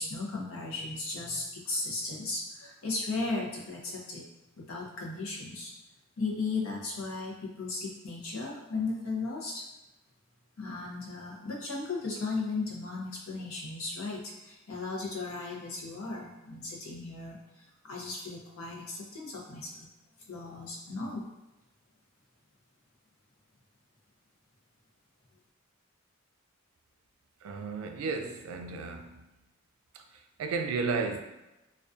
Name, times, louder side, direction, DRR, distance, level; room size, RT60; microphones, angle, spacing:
voice 1, 0.0-4.2 4.6-5.7 6.2-9.6 10.6-19.9 20.3-21.2, left 3 dB, 90° left, 0.6 m, -36 dB
voice 2, 27.4-29.3 29.9-31.2, right 4 dB, 90° right, 0.3 m, -34 dB
2.4 x 2.2 x 2.3 m
head